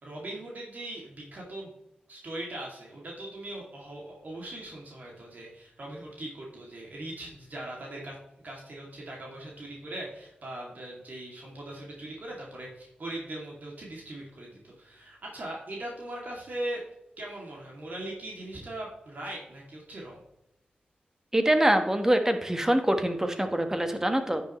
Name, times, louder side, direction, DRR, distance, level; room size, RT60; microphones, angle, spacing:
voice 1, 0.0-1.7 2.1-8.2 8.4-16.8 17.2-20.2, right 1 dB, 60° right, -3 dB, 2.5 m, -40 dB
voice 2, 21.3-24.4, right 1 dB, 15° right, 6 dB, 1.4 m, -24 dB
10.0 x 6.9 x 3.1 m, 0.87 s
cardioid pair, 55°, 3 cm